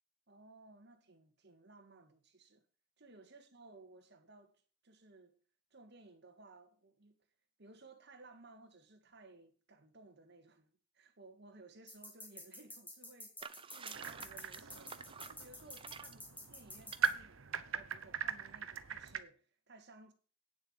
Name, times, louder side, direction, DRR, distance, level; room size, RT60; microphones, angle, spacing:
voice 1, 0.3-2.6 3.0-5.4 5.7-7.1 7.6-13.4 13.7-15.0 15.3-20.1, right 3 dB, 55° right, 1.9 m, -59 dB
sound 1, 11.9-17.1, left 1 dB, 10° left, 2.9 m, -50 dB
sound 2, 13.4-16.2 16.8-17.1, right 6 dB, 25° right, 0.6 m, -50 dB
sound 3, 13.9-19.2, right 6 dB, 85° right, 1.0 m, -41 dB
9.2 x 7.3 x 7.2 m
head